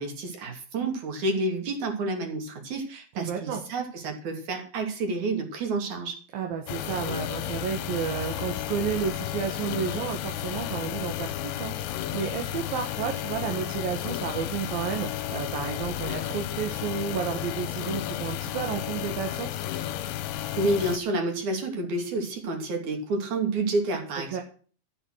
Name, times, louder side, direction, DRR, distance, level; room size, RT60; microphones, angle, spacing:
voice 1, 0.0-6.2 20.6-24.4, right 2 dB, 55° right, 3 dB, 4.0 m, -29 dB
voice 2, 3.2-3.6 6.3-19.5 24.3-24.4, right 7 dB, 75° right, 3 dB, 3.3 m, -32 dB
sound 1, 6.7-21.0, left 12 dB, 80° left, 2.3 m, -32 dB
13.5 x 9.1 x 6.3 m, 0.42 s
omnidirectional pair, 4.2 m